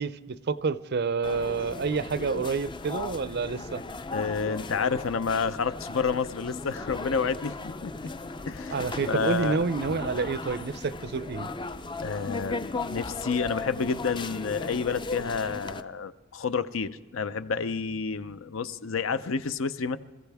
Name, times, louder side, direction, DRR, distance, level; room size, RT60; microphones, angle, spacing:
voice 1, 0.0-3.8 8.7-11.5, right 4 dB, 55° right, 0.5 m, -28 dB
sound 1, 1.2-15.8, left 3 dB, 25° left, 0.5 m, -37 dB
voice 2, 4.1-7.9 8.5-8.8 9.1-9.6 12.0-20.0, left 5 dB, 70° left, 0.7 m, -29 dB
27.5 x 15.0 x 3.5 m
head